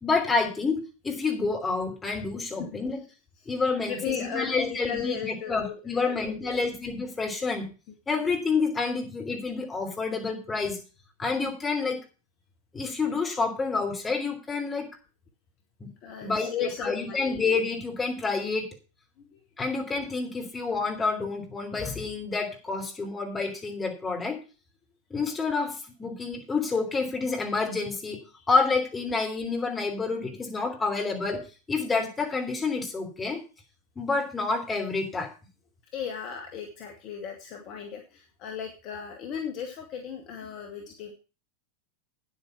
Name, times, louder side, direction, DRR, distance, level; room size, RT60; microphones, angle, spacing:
voice 1, 0.0-3.0 3.4-7.7 8.1-10.8 11.2-12.0 12.7-14.8 15.8-15.9 16.2-18.7 19.6-24.4 25.1-28.2 28.5-31.4 31.7-33.4 33.9-35.3, left 4 dB, 15° left, 2 dB, 3.2 m, -28 dB
voice 2, 3.8-6.6 16.0-17.4 19.3-19.4 28.4-28.5 35.9-41.1, left 7 dB, 40° left, 4 dB, 1.7 m, -36 dB
9.4 x 8.5 x 5.9 m, 0.34 s
figure-of-eight pair, 90°, 0 cm